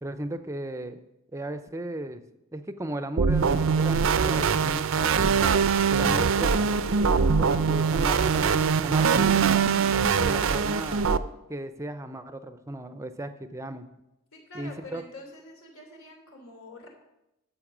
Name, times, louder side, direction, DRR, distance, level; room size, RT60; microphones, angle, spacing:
voice 1, 0.0-1.0 1.3-2.2 2.5-5.5 5.9-9.7 10.2-11.2 11.5-13.9 14.5-15.0, right 1 dB, 15° right, 10 dB, 0.5 m, -36 dB
sound 1, 3.2-11.2, right 6 dB, 70° right, 0.5 m, -22 dB
voice 2, 14.3-16.9, left 2 dB, 85° left, 2 dB, 3.1 m, -45 dB
12.0 x 7.1 x 6.0 m, 0.90 s
head